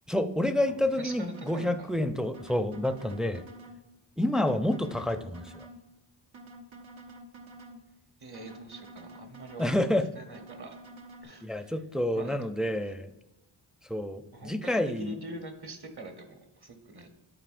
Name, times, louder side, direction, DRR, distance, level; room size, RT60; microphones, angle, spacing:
voice 1, 0.1-3.4 4.2-5.5 9.6-10.1 11.4-13.1 13.9-15.1, left 1 dB, ahead, 9 dB, 0.4 m, -28 dB
voice 2, 0.7-1.9 8.2-10.8 11.2-11.7 12.1-12.4 12.8-12.9 14.3-14.7 15.0-17.1, right 2 dB, 55° right, 5 dB, 1.1 m, -44 dB
sound 1, 1.1-1.8 2.3-3.8 4.3-5.8 6.3-7.8 8.3-9.8 10.3-11.2, right 1 dB, 80° right, 0.9 m, -48 dB
11.0 x 4.2 x 2.5 m, 0.99 s
cardioid pair, 50°, 46 cm